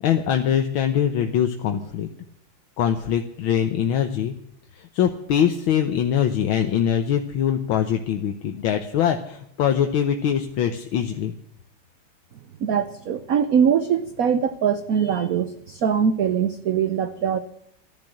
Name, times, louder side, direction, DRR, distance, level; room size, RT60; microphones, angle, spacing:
voice 1, 0.0-2.1 2.8-4.3 4.8-11.3, left 9 dB, 75° left, 6 dB, 1.8 m, -23 dB
voice 2, 12.6-17.4, right 7 dB, 60° right, 10 dB, 1.0 m, -22 dB
14.0 x 12.0 x 7.7 m, 0.73 s
omnidirectional pair, 2.3 m